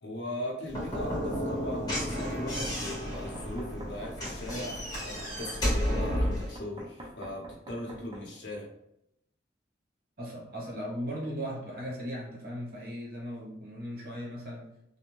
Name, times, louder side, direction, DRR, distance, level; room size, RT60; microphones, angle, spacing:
voice 1, 0.0-8.7, left 1 dB, 75° left, -1 dB, 0.8 m, -39 dB
Slam / Knock, 0.7-6.5, equal, 20° left, 1.1 m, -32 dB
Knock, 2.9-4.6 6.6-8.3, equal, 25° right, 0.5 m, -46 dB
voice 2, 10.2-14.7, equal, 55° right, -3 dB, 0.9 m, -37 dB
2.5 x 2.1 x 3.0 m, 0.78 s
head